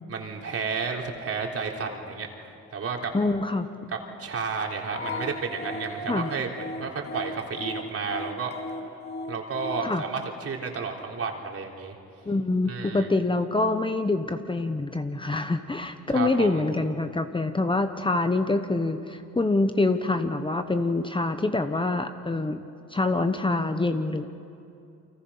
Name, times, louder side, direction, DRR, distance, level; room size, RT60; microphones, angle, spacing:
voice 1, 0.1-2.3 2.7-3.1 4.2-8.5 9.3-11.9 12.7-13.1 16.1-16.5, right 5 dB, 50° right, 1 dB, 3.6 m, -31 dB
voice 2, 3.1-3.7 6.1-6.3 9.8-10.0 12.2-22.6 22.9-24.3, left 2 dB, 15° left, 8 dB, 1.1 m, -25 dB
sound 1, 4.9-9.9, left 2 dB, 35° left, 2.9 m, -36 dB
29.5 x 24.5 x 5.7 m, 2.7 s
cardioid pair, 90°, 30 cm